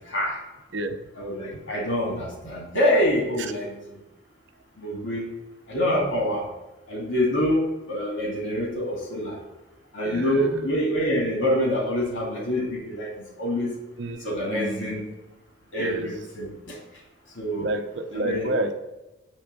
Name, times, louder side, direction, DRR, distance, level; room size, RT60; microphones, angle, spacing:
voice 1, 0.1-0.4 1.2-3.8 4.8-5.3 5.7-6.4 6.9-9.4 9.9-13.1 13.4-13.7 14.2-15.1 15.7-16.8 17.4-17.7 18.1-18.5, equal, 85° left, -2 dB, 2.2 m, -26 dB
voice 2, 10.0-10.5 14.0-15.0 15.8-16.1 17.6-18.7, right 2 dB, 70° right, 6 dB, 0.7 m, -30 dB
8.4 x 3.4 x 6.6 m, 1.0 s
head